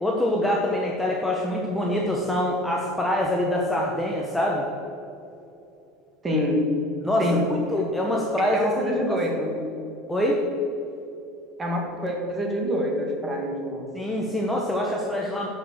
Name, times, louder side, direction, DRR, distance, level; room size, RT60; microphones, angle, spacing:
voice 1, 0.0-4.6 7.0-7.2 7.7-8.7 9.1-9.2 10.1-10.4 13.9-15.5, left 1 dB, 5° left, -2 dB, 1.0 m, -25 dB
voice 2, 6.2-6.7 7.2-7.5 8.0-8.1 8.5-9.6 11.6-13.9, equal, 20° right, 0 dB, 2.0 m, -26 dB
10.0 x 6.1 x 6.4 m, 2.8 s
supercardioid pair, 145°, 0 cm